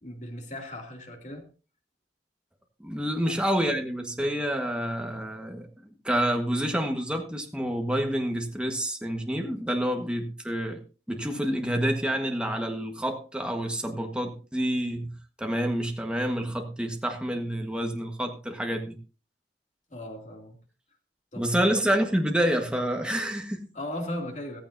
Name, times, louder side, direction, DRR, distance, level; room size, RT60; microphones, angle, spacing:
voice 1, 0.0-1.5 3.2-3.4 19.9-20.6 21.3-21.7 23.7-24.6, left 1 dB, 40° left, 2 dB, 2.7 m, -37 dB
voice 2, 2.8-10.8 11.1-15.1 15.4-19.0 21.4-23.7, equal, 5° right, 3 dB, 1.4 m, -28 dB
15.0 x 14.5 x 2.7 m, 0.35 s
head